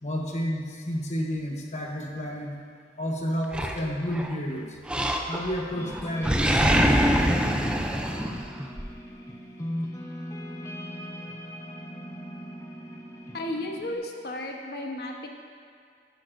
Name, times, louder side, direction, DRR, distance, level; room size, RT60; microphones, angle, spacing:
voice 1, 0.0-2.6 3.0-4.8 5.3-8.3, equal, 40° left, 0 dB, 1.1 m, -31 dB
Animal, 3.5-4.3 4.9-5.6 5.9-8.9, equal, 5° right, 0.5 m, -24 dB
sound 1, 5.7-14.0, equal, 20° left, 0.8 m, -39 dB
voice 2, 13.3-15.3, left 1 dB, 60° left, 1 dB, 1.0 m, -33 dB
12.0 x 10.5 x 2.6 m, 2.2 s
head